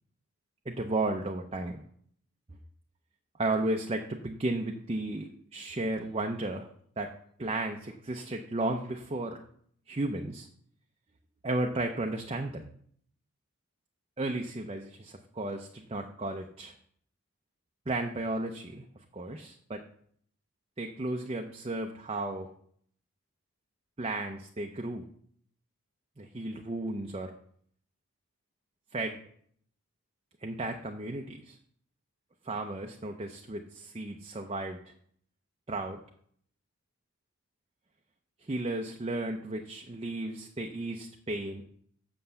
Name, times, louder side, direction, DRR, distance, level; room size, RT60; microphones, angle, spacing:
voice 1, 0.7-1.8 3.4-6.7 7.0-7.1 7.4-9.4 9.9-10.5 11.4-12.7 14.2-16.7 17.9-19.8 20.8-22.5 24.0-25.0 26.2-27.3 28.9-29.2 30.4-31.6 32.4-34.9 35.7-36.0 38.4-41.6, right 2 dB, 25° right, 4 dB, 0.6 m, -34 dB
7.7 x 6.8 x 6.9 m, 0.63 s
head